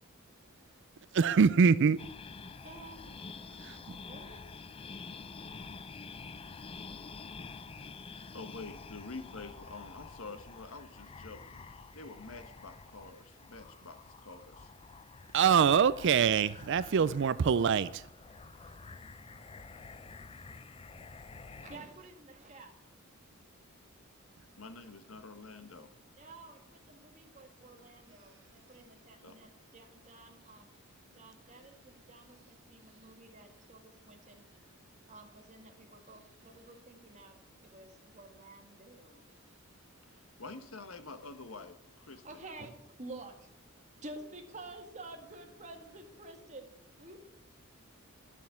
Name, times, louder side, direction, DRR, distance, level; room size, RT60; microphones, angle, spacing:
voice 1, 1.1-2.0 3.6-3.8 15.3-18.0, right 6 dB, 60° right, 0.4 m, -24 dB
sound 1, 2.0-21.8, left 4 dB, 25° left, 0.4 m, -49 dB
voice 2, 2.6-3.1 4.0-4.4 21.5-22.7 26.2-30.7 31.1-34.5 35.1-39.3 42.1-42.7 43.0-46.7 47.0-47.2, right 2 dB, 35° right, 1.9 m, -51 dB
voice 3, 8.3-11.6 11.9-14.7 17.0-17.2 24.6-25.9 29.2-29.3 40.4-42.2, left 3 dB, 75° left, 1.4 m, -47 dB
11.5 x 7.4 x 8.5 m
head